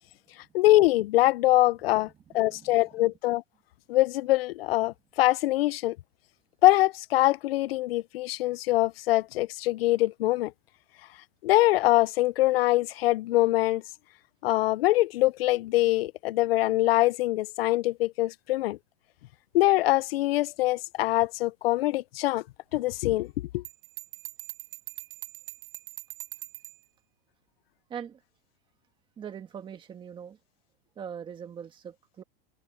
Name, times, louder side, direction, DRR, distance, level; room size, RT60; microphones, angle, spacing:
voice 1, 0.5-3.4 3.9-6.0 6.6-10.5 11.4-13.8 14.4-18.8 19.5-22.4 22.7-23.6, left 17 dB, 85° left, 0.5 m, -24 dB
voice 2, 2.3-2.8 27.9-28.2 29.2-30.4 30.9-32.2, right 8 dB, 15° right, 1.7 m, -41 dB
Bell, 23.6-26.8, right 16 dB, 65° right, 0.9 m, -42 dB
supercardioid pair, 165°, 29 cm